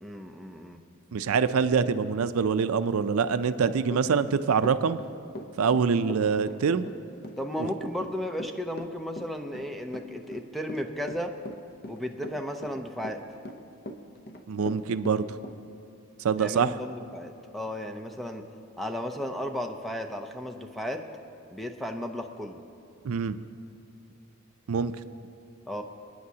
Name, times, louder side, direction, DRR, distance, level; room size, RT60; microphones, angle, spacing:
voice 1, 0.0-0.8 7.4-11.3 11.9-13.2 16.4-18.4 18.8-21.0 21.5-22.6 25.7-25.8, equal, ahead, 4 dB, 0.5 m, -34 dB
voice 2, 1.1-5.0 5.6-6.9 7.6-7.7 14.5-15.3 16.2-16.7 23.0-23.4 24.7-24.9, right 6 dB, 75° right, 12 dB, 0.4 m, -25 dB
Run / Walk footsteps, 3.9-15.6, left 1 dB, 45° left, 0.7 m, -40 dB
27.5 x 9.5 x 2.8 m, 2.8 s
head